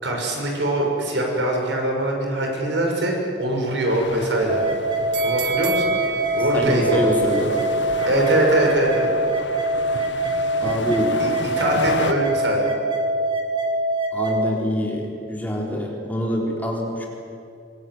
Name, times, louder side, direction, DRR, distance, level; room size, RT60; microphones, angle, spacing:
voice 1, 0.0-4.6 5.2-6.0 6.4-7.0 8.1-9.1 11.2-11.3 11.6-12.7, right 1 dB, 85° right, 0 dB, 6.6 m, -22 dB
sound 1, 3.9-12.1, left 3 dB, 85° left, 1.6 m, -33 dB
sound 2, 4.5-14.5, right 1 dB, 30° right, 3.2 m, -24 dB
sound 3, 5.1-8.2 8.6-8.7, right 7 dB, 70° right, 1.8 m, -32 dB
voice 2, 6.5-7.5 10.6-11.2 14.1-17.1, equal, 10° left, -1 dB, 4.1 m, -25 dB
25.0 x 22.5 x 9.6 m, 2.5 s
head